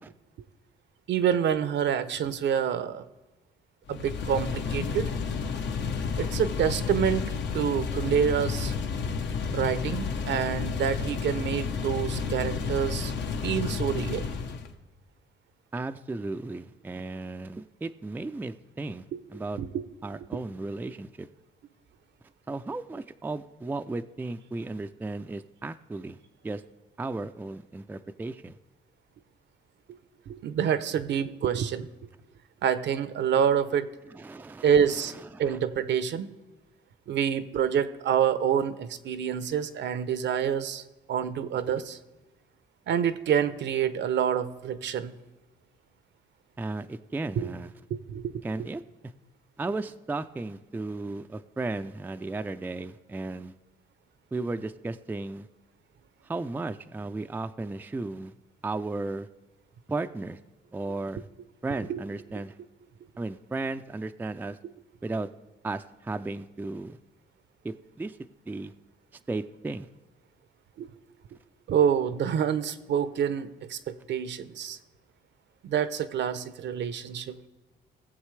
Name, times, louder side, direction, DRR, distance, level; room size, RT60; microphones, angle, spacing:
voice 1, 1.1-3.1 3.9-5.1 6.2-8.7 9.5-13.1 13.4-14.3 19.1-19.2 19.6-19.8 20.3-20.4 29.9-30.0 30.3-31.9 32.6-33.9 34.6-35.1 35.4-36.3 37.1-40.8 41.1-42.0 42.9-45.1 47.4-47.5 47.9-48.3 48.6-48.7 61.9-62.0 70.8-70.9 71.7-74.8 75.6-77.5, right 8 dB, 65° right, 13 dB, 0.6 m, -27 dB
sound 1, 3.9-14.7, left 5 dB, 65° left, 0.8 m, -31 dB
voice 2, 15.7-19.6 20.0-21.3 22.5-26.2 26.4-26.6 27.0-28.6 34.1-35.6 46.6-47.7 48.4-48.8 49.6-53.5 54.3-55.5 56.2-58.3 58.6-59.3 59.9-60.4 60.7-61.3 61.6-62.5 63.2-64.6 65.0-65.3 65.6-67.0 67.6-68.2 68.5-68.7 69.3-69.9, right 3 dB, 10° right, 9 dB, 0.3 m, -35 dB
18.5 x 7.3 x 3.2 m, 1.1 s
cardioid pair, 90°, 20 cm